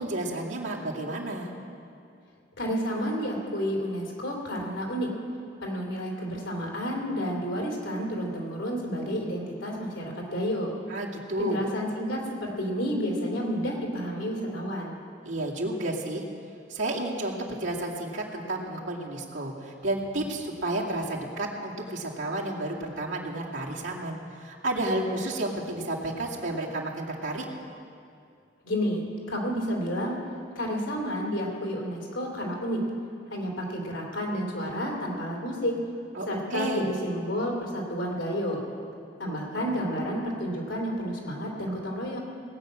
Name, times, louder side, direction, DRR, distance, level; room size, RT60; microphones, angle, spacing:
voice 1, 0.0-1.5 10.9-11.6 15.2-16.2 16.7-27.4 36.1-36.9, right 1 dB, 80° right, -4 dB, 2.3 m, -31 dB
voice 2, 2.6-5.1 5.6-10.7 11.4-14.9 28.6-29.0 29.3-30.2 30.5-32.8 33.3-35.8 36.3-38.6 39.2-42.2, equal, 85° left, -1 dB, 2.9 m, -30 dB
19.0 x 6.3 x 8.6 m, 2.4 s
head